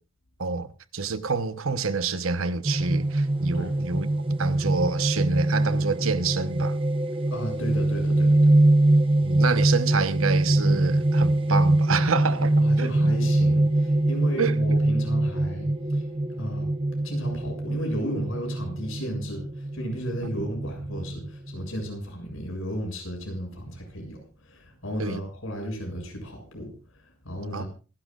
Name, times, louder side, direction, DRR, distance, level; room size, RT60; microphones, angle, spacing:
voice 1, 0.4-6.8 9.2-13.1 14.4-14.6 20.2-20.3 25.0-25.2 27.5-27.6, right 4 dB, 80° right, 1.1 m, -28 dB
sound 1, 2.6-21.8, right 1 dB, 25° right, 1.0 m, -23 dB
voice 2, 7.3-8.5 12.6-16.7 17.0-27.7, equal, 75° left, 7.2 m, -34 dB
27.0 x 12.0 x 2.5 m
head